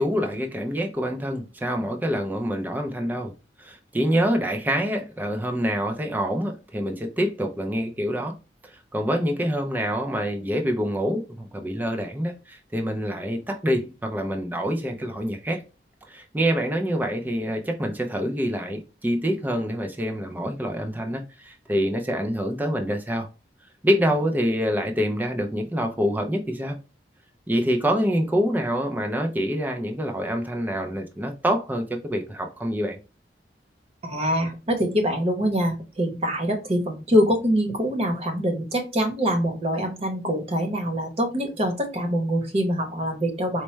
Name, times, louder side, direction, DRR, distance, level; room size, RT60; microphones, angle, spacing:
voice 1, 0.0-3.3 3.6-8.4 8.6-15.6 16.1-23.3 23.8-26.8 27.5-33.0, equal, 10° right, 0.4 m, -26 dB
voice 2, 34.0-43.6, equal, 35° right, 0.9 m, -24 dB
4.4 x 2.1 x 3.1 m
head